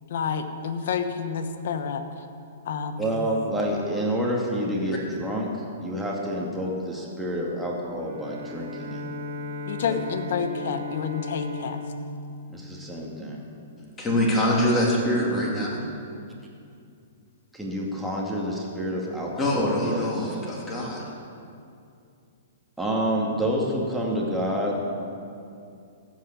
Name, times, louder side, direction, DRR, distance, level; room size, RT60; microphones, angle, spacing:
voice 1, 0.1-2.0 2.7-3.3 9.7-11.8 15.1-15.4, left 6 dB, 65° left, 8 dB, 1.1 m, -29 dB
voice 2, 3.0-5.5 5.8-9.0 9.9-10.0 12.5-13.4 17.5-20.4 22.8-24.8, equal, 5° right, -4 dB, 2.3 m, -28 dB
Bowed string instrument, 8.0-13.5, left 2 dB, 65° right, 1.5 m, -36 dB
voice 3, 14.0-15.8 19.4-21.0, left 1 dB, 15° left, -4 dB, 3.2 m, -24 dB
15.0 x 5.6 x 8.7 m, 2.5 s
hypercardioid pair, 135°, 0 cm